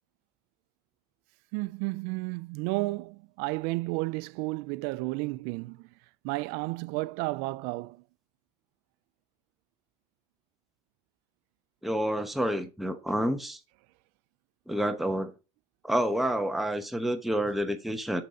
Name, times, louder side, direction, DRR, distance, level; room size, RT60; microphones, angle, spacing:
voice 1, 1.5-5.9 6.2-8.0, right 22 dB, 70° right, 0.5 m, -32 dB
voice 2, 11.8-13.6 14.7-15.3 15.8-18.2, equal, ahead, 0.9 m, -29 dB
6.8 x 6.5 x 5.1 m
supercardioid pair, 115°, 17 cm